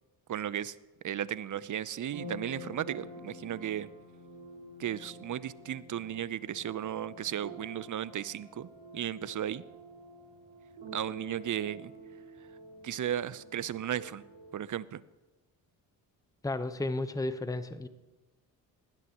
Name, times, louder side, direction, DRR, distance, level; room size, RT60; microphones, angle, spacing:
voice 1, 0.3-0.7 1.0-3.9 4.8-9.6 10.9-11.9 12.8-14.2 14.5-15.0, right 10 dB, 40° right, 18 dB, 0.7 m, -35 dB
sound 1, 2.0-14.6, right 1 dB, 60° right, 4.5 m, -48 dB
voice 2, 16.4-17.9, left 2 dB, 5° left, 11 dB, 1.0 m, -33 dB
21.5 x 16.0 x 3.1 m, 1.1 s
hypercardioid pair, 50°, 48 cm